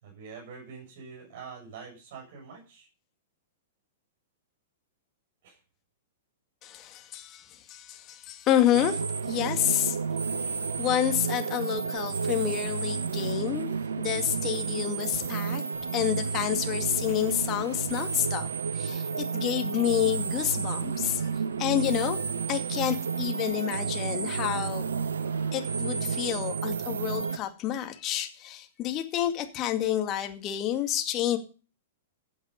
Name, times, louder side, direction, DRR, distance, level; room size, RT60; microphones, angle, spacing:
voice 1, 0.0-2.9 5.4-5.6, right 5 dB, 50° right, -1 dB, 7.3 m, -45 dB
voice 2, 6.6-10.0 10.8-13.7 14.0-15.6 15.9-18.5 18.7-21.3 21.6-22.2 22.5-24.8 25.5-31.4, left 12 dB, 30° left, 6 dB, 2.2 m, -29 dB
sound 1, 8.7-27.4, right 5 dB, 70° right, 0.9 m, -31 dB
15.0 x 8.0 x 5.4 m, 0.34 s
figure-of-eight pair, 105°, 0 cm